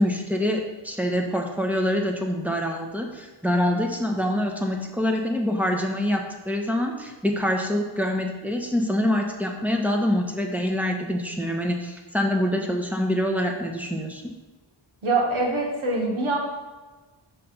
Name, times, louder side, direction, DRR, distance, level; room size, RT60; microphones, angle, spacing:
voice 1, 0.0-14.3, left 1 dB, 5° right, 1 dB, 0.8 m, -25 dB
voice 2, 15.0-16.4, right 2 dB, 90° right, -1 dB, 1.4 m, -24 dB
5.8 x 3.3 x 5.5 m, 1.2 s
wide cardioid pair, 70°, 48 cm